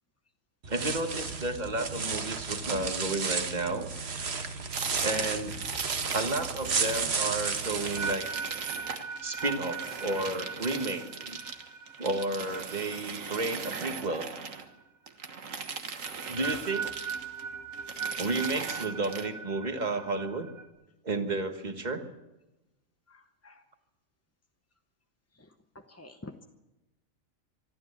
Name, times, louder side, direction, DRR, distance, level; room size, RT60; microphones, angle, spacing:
sound 1, 0.6-8.1, right 5 dB, 50° right, 1.5 m, -33 dB
voice 1, 0.7-3.9 5.0-5.6 6.1-8.3 9.2-11.4 12.0-14.3 16.3-16.9 18.2-20.5 21.0-22.0, right 2 dB, 30° right, 7 dB, 1.6 m, -32 dB
sound 2, 4.7-7.1 7.4-14.7 15.1-17.4 17.7-19.3, right 5 dB, 70° right, 1.8 m, -39 dB
sound 3, 7.7-14.1 14.4-14.8 16.0-20.7, right 5 dB, 90° right, 2.7 m, -40 dB
voice 2, 23.1-23.7 25.3-26.4, left 2 dB, 15° left, 5 dB, 0.6 m, -50 dB
24.5 x 12.5 x 8.5 m, 1.0 s
omnidirectional pair, 1.4 m